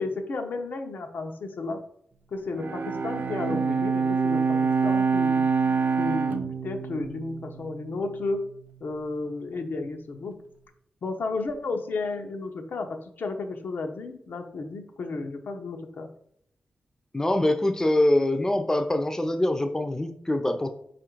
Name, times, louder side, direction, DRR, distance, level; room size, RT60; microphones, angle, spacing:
voice 1, 0.0-1.8 2.3-5.5 6.0-8.5 8.8-10.4 11.0-16.1, left 3 dB, 75° left, 5 dB, 0.7 m, -33 dB
Bowed string instrument, 2.5-8.1, right 5 dB, 60° right, 0.4 m, -26 dB
voice 2, 17.1-20.7, left 1 dB, 15° left, 6 dB, 0.5 m, -24 dB
4.8 x 2.5 x 4.5 m, 0.69 s
cardioid pair, 65°, 3 cm